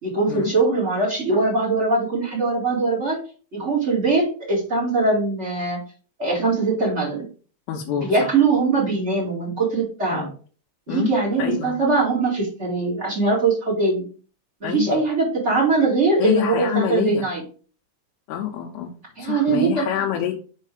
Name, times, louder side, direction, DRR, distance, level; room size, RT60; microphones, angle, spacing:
voice 1, 0.0-3.2 3.5-5.8 6.2-7.2 7.9-10.3 10.9-14.1 14.6-17.4 19.2-19.9, right 3 dB, 30° right, -5 dB, 1.3 m, -21 dB
voice 2, 7.7-8.3 10.1-10.3 10.9-11.1 11.4-11.7 14.6-15.0 16.2-17.2 18.3-18.9 19.2-20.3, left 9 dB, 80° left, 1 dB, 2.7 m, -26 dB
6.5 x 4.1 x 4.9 m, 0.40 s
omnidirectional pair, 5.2 m